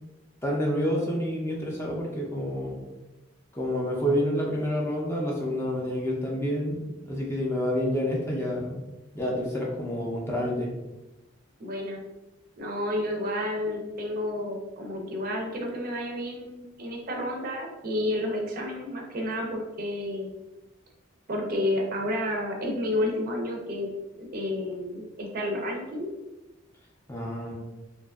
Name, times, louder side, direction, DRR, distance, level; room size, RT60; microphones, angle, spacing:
voice 1, 0.4-2.8 3.5-8.8 9.1-10.7 27.1-27.5, equal, 15° left, -3 dB, 0.4 m, -28 dB
voice 2, 11.6-12.0 12.6-20.4 21.3-23.9 24.2-26.1, left 1 dB, 45° right, 0 dB, 0.4 m, -30 dB
2.6 x 2.3 x 2.3 m, 1.0 s
head